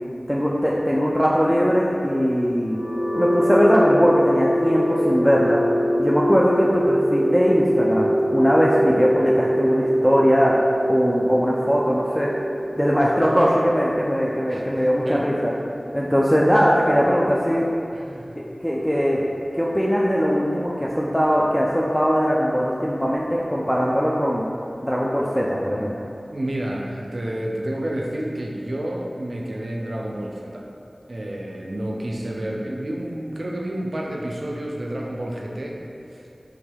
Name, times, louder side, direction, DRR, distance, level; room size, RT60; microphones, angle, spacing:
voice 1, 0.3-2.8 3.1-5.6 6.0-12.3 12.8-15.5 15.9-17.6 18.4-19.2 19.5-24.4 24.8-25.9, equal, 5° left, -5 dB, 0.3 m, -20 dB
sound 1, 2.6-16.5, equal, 40° left, 1.1 m, -24 dB
voice 2, 14.5-15.3 15.9-16.1 17.9-18.3 26.3-30.7 31.1-35.8, right 1 dB, 65° right, -1 dB, 0.4 m, -30 dB
3.5 x 3.2 x 2.2 m, 2.6 s
wide cardioid pair, 40°, 0 cm